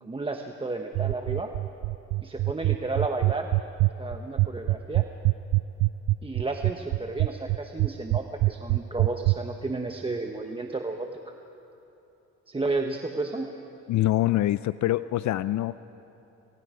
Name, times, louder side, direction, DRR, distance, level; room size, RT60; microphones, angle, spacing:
voice 1, 0.0-1.5 2.2-3.5 4.0-5.0 6.2-11.1 12.5-13.5, right 3 dB, 20° right, 4 dB, 1.1 m, -32 dB
sound 1, 0.9-9.4, right 21 dB, 80° right, 0.5 m, -23 dB
voice 2, 13.9-15.8, left 15 dB, 70° left, 15 dB, 0.5 m, -25 dB
27.5 x 22.5 x 5.0 m, 3.0 s
cardioid pair, 90°, 30 cm